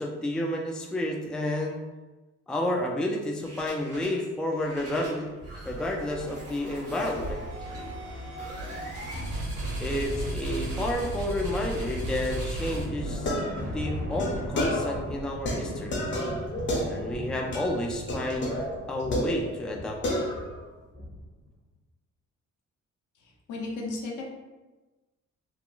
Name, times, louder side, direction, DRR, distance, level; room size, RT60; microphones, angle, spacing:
voice 1, 0.0-1.8 2.5-5.3 5.7-7.5 9.8-13.3 13.7-16.0 16.9-18.6 18.9-20.0, left 1 dB, 5° left, 0 dB, 0.3 m, -30 dB
sound 1, 3.4-4.2 4.5-21.5, right 1 dB, 50° right, 1.3 m, -36 dB
sound 2, 13.1-15.1 15.5-17.3 17.5-17.8 18.1-19.8 20.0-20.6, left 1 dB, 40° left, 0.7 m, -31 dB
voice 2, 23.2-24.2, left 2 dB, 75° left, -1 dB, 0.7 m, -35 dB
3.6 x 2.1 x 2.4 m, 1.2 s
cardioid pair, 90°, 30 cm